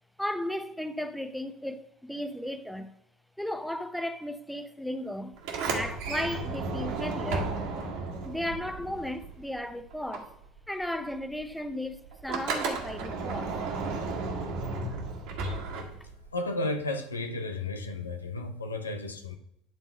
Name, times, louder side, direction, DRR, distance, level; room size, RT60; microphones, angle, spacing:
voice 1, 0.2-2.9 3.4-5.4 5.7-7.6 8.2-10.3 10.7-13.6 14.9-15.0, left 1 dB, ahead, 0.7 m, -35 dB
Sliding door, 5.4-9.6 9.9-16.3, right 3 dB, 60° right, 1.8 m, -34 dB
voice 2, 16.3-19.4, left 2 dB, 85° left, 0.6 m, -33 dB
10.5 x 3.6 x 5.2 m
figure-of-eight pair, 70°, 0 cm